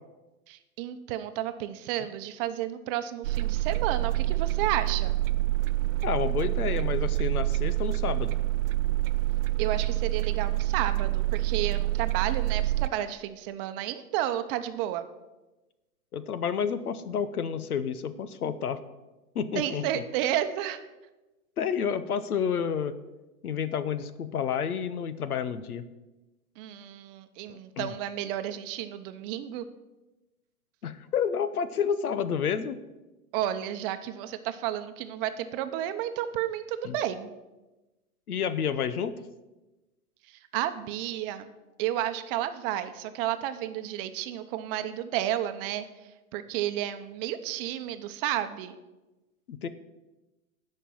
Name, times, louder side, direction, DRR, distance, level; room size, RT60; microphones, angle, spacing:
voice 1, 0.5-5.1 9.6-15.0 19.5-20.8 26.6-29.7 33.3-37.3 40.3-41.5 41.8-45.8 46.3-48.7, right 12 dB, 40° right, 10 dB, 0.8 m, -32 dB
sound 1, 3.2-12.9, right 16 dB, 65° right, 0.6 m, -27 dB
voice 2, 6.0-8.4 16.1-18.8 19.3-20.0 21.6-23.0 23.4-25.8 27.5-28.0 30.8-32.8 36.8-36.9 38.3-39.1 49.5-49.7, left 7 dB, 85° left, 13 dB, 0.9 m, -30 dB
11.0 x 5.4 x 7.7 m, 1.1 s
hypercardioid pair, 120°, 44 cm